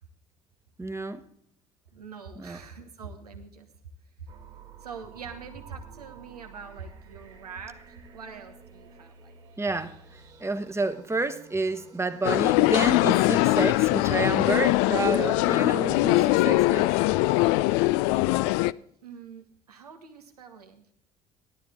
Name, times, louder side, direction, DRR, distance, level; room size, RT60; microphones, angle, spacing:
voice 1, 0.8-1.2 2.4-2.6 9.6-10.0 10.4-16.9, right 3 dB, 15° right, 1.2 m, -29 dB
voice 2, 1.9-3.7 4.2-4.3 4.8-9.4 19.0-20.9, right 5 dB, 80° right, 1.4 m, -44 dB
sound 1, 4.3-17.8, right 6 dB, 60° right, 2.3 m, -51 dB
sound 2, 12.2-18.7, left 19 dB, 60° left, 0.4 m, -22 dB
17.0 x 12.0 x 3.7 m
figure-of-eight pair, 55°, 20 cm